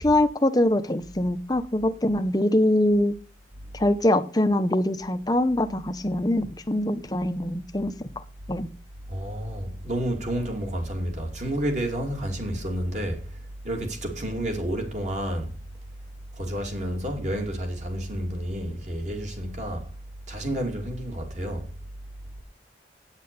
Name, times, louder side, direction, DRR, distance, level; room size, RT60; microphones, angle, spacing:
voice 1, 0.0-3.1 3.7-8.2 8.5-8.7, left 1 dB, 20° left, 0.8 m, -23 dB
voice 2, 9.1-15.5 16.4-19.9 20.3-21.7, right 1 dB, 40° right, 2.7 m, -30 dB
9.1 x 8.6 x 6.8 m
head